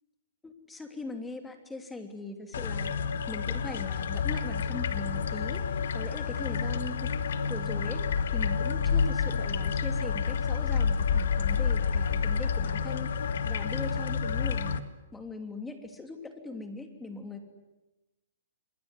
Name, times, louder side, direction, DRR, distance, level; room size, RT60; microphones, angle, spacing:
voice 1, 0.4-2.9 3.3-7.1 7.5-8.0 8.3-14.8 15.1-17.4, left 2 dB, 5° left, 6 dB, 3.0 m, -40 dB
sound 1, 2.5-14.8, left 6 dB, 75° left, 1.7 m, -29 dB
27.5 x 21.5 x 9.6 m, 1.0 s
hypercardioid pair, 160°, 0 cm